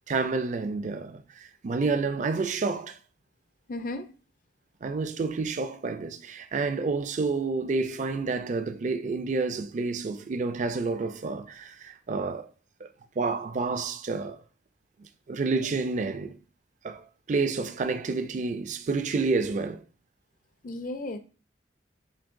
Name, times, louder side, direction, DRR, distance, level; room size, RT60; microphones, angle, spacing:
voice 1, 0.1-3.0 4.8-12.5 13.2-14.4 15.0-16.4 16.8-19.8, right 4 dB, 40° right, 0.4 m, -29 dB
voice 2, 3.7-4.1 20.6-21.2, left 2 dB, 50° left, 0.4 m, -34 dB
7.1 x 2.6 x 2.5 m
head